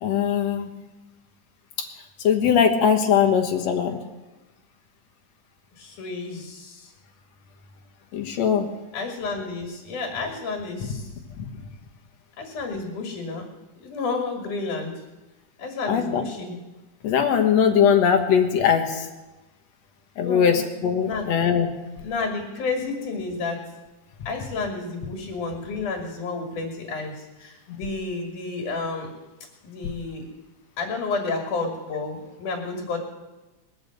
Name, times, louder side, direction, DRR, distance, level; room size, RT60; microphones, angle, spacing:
voice 1, 0.0-0.7 2.2-4.0 8.1-8.7 15.9-16.2 17.0-19.1 20.2-22.0, left 7 dB, 65° left, 5 dB, 2.3 m, -20 dB
voice 2, 5.8-6.9 8.9-11.1 12.4-13.5 13.8-14.9 15.6-16.6 20.2-20.6 21.0-21.2 22.0-23.6 24.3-29.1 29.6-30.3 30.8-33.0, left 3 dB, 80° left, 2 dB, 3.6 m, -31 dB
21.0 x 7.0 x 7.8 m, 1.1 s
omnidirectional pair, 3.5 m